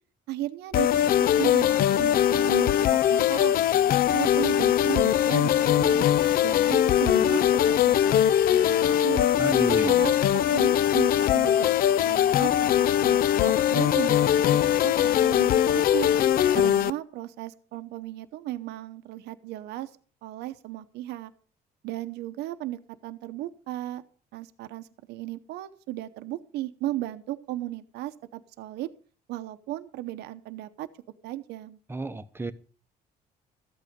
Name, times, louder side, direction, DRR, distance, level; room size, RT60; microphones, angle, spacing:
voice 1, 0.3-0.9 1.2-3.5 4.1-6.1 6.4-9.3 9.8-11.7 12.0-16.1 16.5-19.9 20.2-21.3 21.8-24.0 24.3-28.9 29.3-30.9 31.2-31.8, right 15 dB, 80° right, 0.8 m, -35 dB
sound 1, 0.7-16.9, left 11 dB, 60° left, 0.5 m, -21 dB
voice 2, 9.4-10.1 31.9-32.5, right 3 dB, 15° right, 0.9 m, -32 dB
13.5 x 8.6 x 5.1 m
cardioid pair, 110°, 17 cm